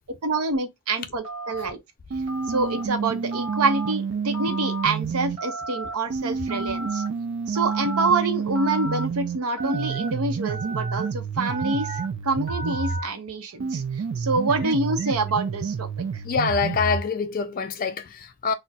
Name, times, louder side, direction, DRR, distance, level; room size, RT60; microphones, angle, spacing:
voice 1, 0.2-1.8 2.5-7.0 7.5-11.9 12.2-13.8 14.2-15.9, right 3 dB, 85° right, 0.7 m, -26 dB
Telephone, 1.2-1.7 2.3-2.8 3.3-3.9 4.3-4.9 5.4-5.9 6.5-7.1 7.5-8.1 8.5-9.0 9.6-10.1 10.5-11.1 11.5-12.0 12.5-13.1, right 1 dB, 25° right, 1.4 m, -34 dB
sound 1, 2.1-5.4 6.1-13.1 13.6-17.1, right 5 dB, 55° right, 0.4 m, -29 dB
voice 2, 16.2-18.5, left 5 dB, 40° left, 0.4 m, -26 dB
4.0 x 2.1 x 2.3 m
head